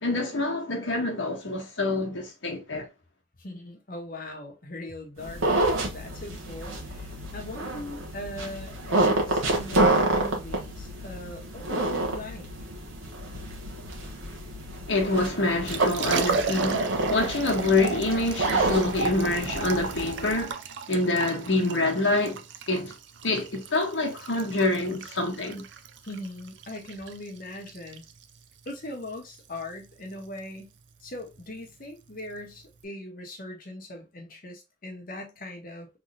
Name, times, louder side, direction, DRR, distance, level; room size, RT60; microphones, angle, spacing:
voice 1, 0.0-2.9 14.9-20.6 20.9-22.9 23.2-25.6, left 2 dB, 65° left, 1.2 m, -26 dB
voice 2, 3.4-12.5 26.0-28.1 28.6-30.7 31.0-36.0, left 1 dB, 45° left, 1.1 m, -40 dB
sound 1, 5.2-20.4, right 2 dB, 85° right, 1.2 m, -29 dB
Liquid, 15.5-32.8, right 5 dB, 60° right, 0.5 m, -36 dB
3.5 x 3.2 x 2.7 m
head